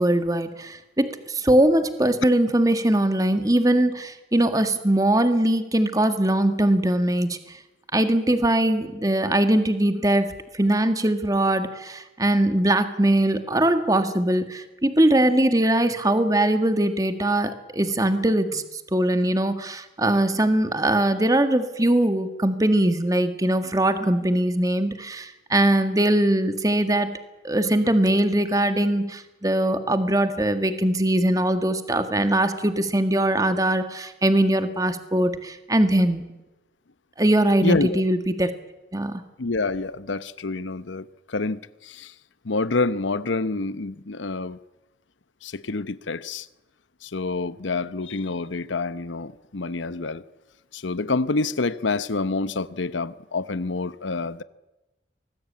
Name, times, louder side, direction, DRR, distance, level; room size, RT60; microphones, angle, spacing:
voice 1, 0.0-7.4 7.9-18.6 18.9-27.1 27.4-36.2 37.2-38.5 38.9-39.2, right 1 dB, 20° right, 1.7 m, -21 dB
voice 2, 37.6-38.0 39.4-42.1 42.4-44.6 45.4-46.5 47.0-50.2 50.7-54.4, left 3 dB, 90° left, 0.9 m, -27 dB
25.0 x 19.5 x 8.6 m
head